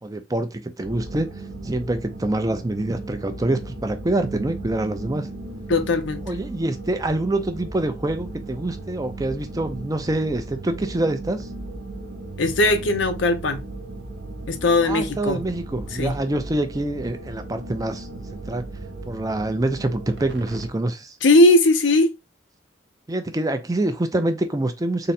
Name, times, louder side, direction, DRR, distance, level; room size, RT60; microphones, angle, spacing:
voice 1, 0.0-1.3 1.6-5.3 6.3-11.5 14.8-18.6 19.1-21.2 23.1-25.1, right 1 dB, 20° right, 0.5 m, -26 dB
sound 1, 0.8-20.7, right 2 dB, 70° right, 0.8 m, -36 dB
voice 2, 5.7-6.3 12.4-13.6 14.5-15.4 16.0-16.2 21.2-22.1, left 2 dB, 85° left, 0.7 m, -18 dB
3.8 x 2.1 x 4.1 m
head